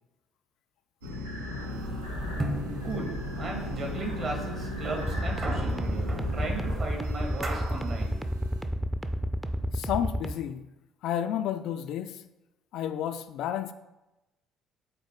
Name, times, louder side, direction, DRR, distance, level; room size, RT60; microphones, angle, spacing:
sound 1, 1.0-8.6, left 1 dB, 85° right, 1.0 m, -37 dB
sound 2, 1.5-8.0, right 2 dB, 30° right, 1.1 m, -38 dB
voice 1, 2.8-8.2, right 3 dB, 50° right, 2.0 m, -36 dB
sound 3, 5.0-10.3, equal, 10° right, 0.5 m, -30 dB
voice 2, 9.7-10.6 11.0-12.2 12.7-13.7, left 10 dB, 55° left, 0.3 m, -31 dB
8.1 x 4.1 x 3.9 m
figure-of-eight pair, 50°, 0 cm